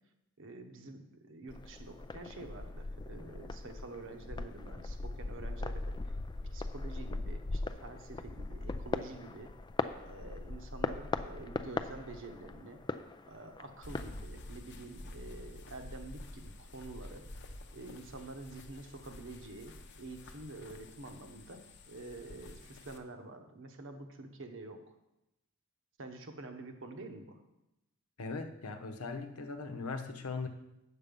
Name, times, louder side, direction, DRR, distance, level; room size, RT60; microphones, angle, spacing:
voice 1, 0.4-6.1 6.5-9.5 10.0-12.8 13.3-17.3 17.7-25.0 26.0-27.4, right 2 dB, 60° right, 6 dB, 1.0 m, -48 dB
sound 1, 1.5-14.2, left 3 dB, 20° left, 0.3 m, -39 dB
sound 2, 13.8-23.0, left 1 dB, 55° left, 0.8 m, -49 dB
voice 2, 28.2-30.5, left 4 dB, 85° left, 6 dB, 1.0 m, -39 dB
8.4 x 6.6 x 5.3 m, 0.90 s
head